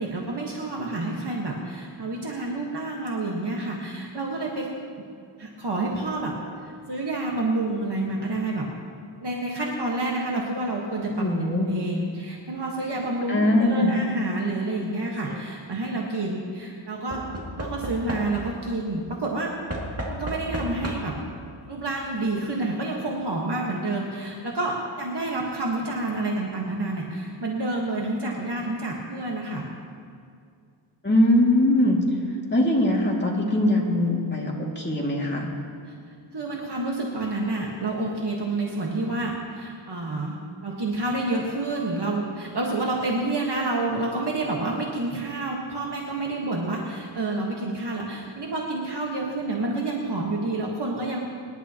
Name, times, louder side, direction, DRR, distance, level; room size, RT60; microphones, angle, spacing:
voice 1, 0.0-4.7 5.4-6.3 6.6-8.7 9.2-11.1 11.6-17.2 17.6-19.5 20.1-21.2 21.7-29.6 35.9-36.0 36.3-40.3 40.6-51.2, right 2 dB, 55° right, -2 dB, 1.6 m, -29 dB
voice 2, 11.2-11.7 13.3-14.0 31.0-32.0 32.5-35.5, left 1 dB, 20° left, -3 dB, 2.3 m, -21 dB
Knock / Wood, 14.9-15.4 17.1-18.6 19.7-21.3 22.3-22.4 22.6-22.7, equal, 30° right, 2.5 m, -33 dB
25.0 x 11.5 x 3.0 m, 2.3 s
wide cardioid pair, 115°, 49 cm